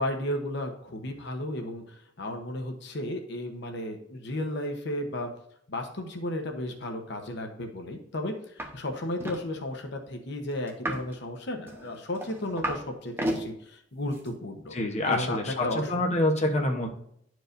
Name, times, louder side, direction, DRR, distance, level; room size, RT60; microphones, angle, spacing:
voice 1, 0.0-5.3 5.7-14.7 15.0-15.9, left 1 dB, 65° left, 4 dB, 0.9 m, -34 dB
sound 1, 8.6-8.7 9.0-9.4 10.7-11.1 11.7-12.8 13.1-13.4 14.1-14.3, right 1 dB, 15° right, 0.9 m, -32 dB
voice 2, 14.7-16.9, left 1 dB, 40° left, 1 dB, 0.9 m, -26 dB
11.0 x 4.7 x 2.6 m, 0.71 s
head